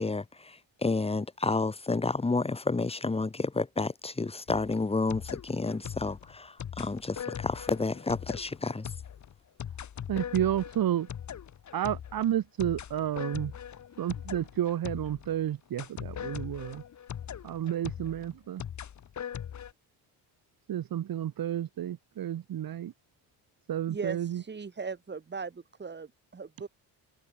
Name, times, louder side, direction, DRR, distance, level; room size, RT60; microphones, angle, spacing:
voice 1, 0.0-8.9, left 3 dB, 15° left, 2.1 m, -30 dB
sound 1, 4.5-15.4 15.8-19.7, left 9 dB, 45° left, 3.0 m, -41 dB
voice 2, 10.1-11.1 11.7-13.5 14.0-16.8 17.4-18.6 20.7-22.9 23.7-24.4, right 11 dB, 55° right, 6.5 m, -31 dB
voice 3, 23.9-26.7, right 5 dB, 25° right, 4.8 m, -38 dB
cardioid pair, 125°, 41 cm